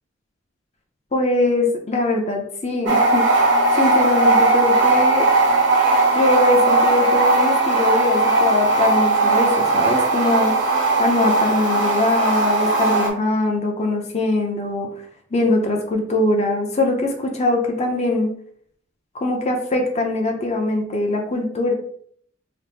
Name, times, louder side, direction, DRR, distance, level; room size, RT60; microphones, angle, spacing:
voice 1, 1.1-3.2 3.8-5.3 6.1-10.5 11.0-14.9 15.3-18.3 19.1-21.7, left 2 dB, 35° left, 2 dB, 0.6 m, -22 dB
sound 1, 2.9-13.1, right 2 dB, 65° right, 1.1 m, -18 dB
5.1 x 2.1 x 2.8 m, 0.62 s
head